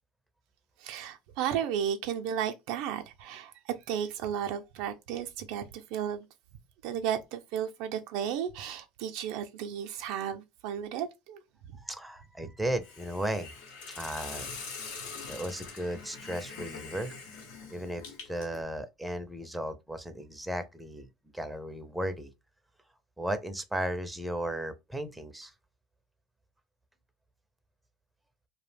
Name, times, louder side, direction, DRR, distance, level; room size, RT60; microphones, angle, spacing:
voice 1, 0.8-6.3 6.8-11.8, right 9 dB, 70° right, 0.4 m, -34 dB
voice 2, 11.8-13.5 13.9-14.5 15.3-17.1 17.7-21.1 21.3-22.3 23.2-25.5, right 1 dB, 5° right, 0.5 m, -35 dB
Hiss, 12.8-18.6, left 5 dB, 80° left, 0.8 m, -43 dB
2.4 x 2.0 x 3.3 m
hypercardioid pair, 90°, 0 cm